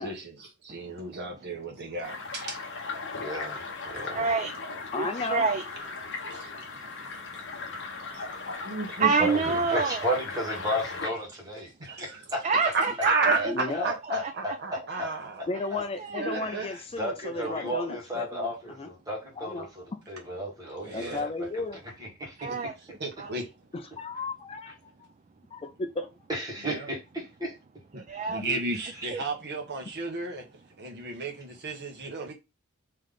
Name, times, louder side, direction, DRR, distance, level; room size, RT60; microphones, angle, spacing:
voice 1, 0.0-2.6 6.3-6.5 7.9-8.2 8.6-9.1 11.8-12.2 12.5-15.6 16.2-16.7 17.3-17.7 20.8-21.2 22.4-22.6 23.0-23.5 26.6-26.9 27.9-28.0 28.3-30.4 30.8-32.3, right 3 dB, 50° right, 1.3 m, -33 dB
sound 1, 2.0-11.1, left 4 dB, 55° left, 1.0 m, -38 dB
voice 2, 3.1-4.3 9.1-12.4 13.3-15.1 15.4-15.8 16.3-21.6 22.0-22.5 26.3-27.6, equal, 15° right, 1.8 m, -34 dB
voice 3, 4.0-5.6 6.0-6.2 6.5-8.2 9.0-10.0 12.4-13.1 13.4-13.5 13.8-13.9 14.2-14.3 14.9-15.0 16.0-16.4 22.4-22.7 23.2-23.3 27.9-28.4 29.1-29.2, right 4 dB, 30° right, 0.4 m, -29 dB
voice 4, 4.9-5.4 13.5-13.9 15.5-18.5 18.8-18.9 19.4-20.0 20.9-21.8 23.7-24.7 25.0-25.1 25.5-26.1 28.4-28.6, left 3 dB, 25° left, 0.4 m, -34 dB
3.4 x 3.2 x 3.8 m
head